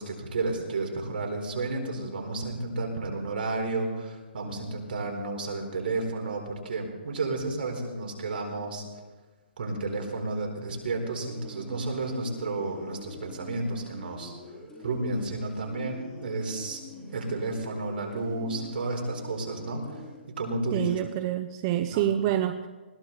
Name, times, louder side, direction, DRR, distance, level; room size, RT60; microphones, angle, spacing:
voice 1, 0.0-8.8 9.6-14.3 14.8-16.8 17.1-20.0 20.4-21.0 21.9-22.1, right 2 dB, 60° right, 2 dB, 4.3 m, -32 dB
sound 1, 10.9-20.2, left 2 dB, 10° left, 4.1 m, -46 dB
voice 2, 20.7-22.7, right 12 dB, 25° right, 8 dB, 0.6 m, -27 dB
20.5 x 15.5 x 4.1 m, 1.3 s
hypercardioid pair, 165°, 6 cm